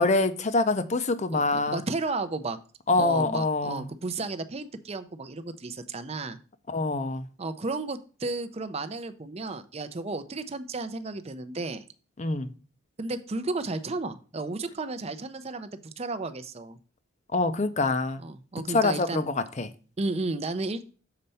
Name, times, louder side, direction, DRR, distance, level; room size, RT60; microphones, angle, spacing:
voice 1, 0.0-1.8 2.9-3.9 6.7-7.3 12.2-12.5 17.3-18.2 18.7-19.7, left 3 dB, 35° left, 0.6 m, -25 dB
voice 2, 1.3-2.6 3.0-6.4 7.4-11.8 13.0-15.7 16.0-16.8 18.2-19.2 20.0-20.8, right 3 dB, 30° right, 0.5 m, -33 dB
6.8 x 4.3 x 5.5 m
head